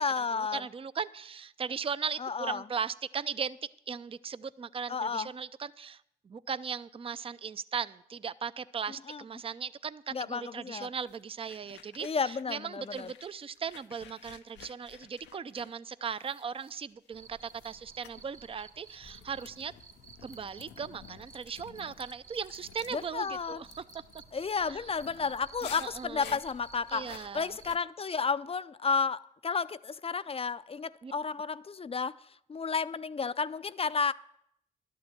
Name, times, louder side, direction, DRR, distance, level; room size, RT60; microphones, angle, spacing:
voice 1, 0.0-0.6 2.2-2.6 4.9-5.3 9.1-9.2 10.1-10.9 12.0-13.1 22.9-23.6 24.3-32.2 32.5-34.1, left 5 dB, 35° left, 0.4 m, -32 dB
voice 2, 0.5-3.6 3.9-6.0 6.3-19.7 20.2-23.7 24.7-24.8 25.6-26.4 26.9-27.6 31.0-31.1, right 6 dB, 30° right, 0.4 m, -38 dB
sound 1, 11.1-12.6 12.8-17.1 17.5-17.8 18.0-18.2 18.9-27.8, left 10 dB, 80° left, 0.5 m, -52 dB
Cricket, 17.1-27.8, right 4 dB, 50° right, 1.4 m, -54 dB
12.0 x 7.0 x 7.6 m
supercardioid pair, 40°, 18 cm